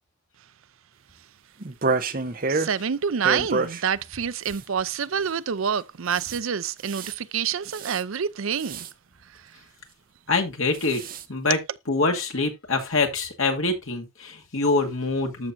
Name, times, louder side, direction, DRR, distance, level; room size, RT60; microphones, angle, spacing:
sound 1, 1.6-2.7 3.2-3.8 4.4-4.6 6.1-6.4 6.8-7.1 7.7-8.0 8.6-8.9 10.7-11.2, right 3 dB, 40° right, 0.8 m, -28 dB
voice 1, 2.5-8.9 9.3-9.5, right 7 dB, 75° right, 0.5 m, -27 dB
voice 2, 10.3-11.0 11.3-11.6 11.9-15.5, left 3 dB, 80° left, 2.2 m, -25 dB
13.5 x 6.2 x 2.6 m
head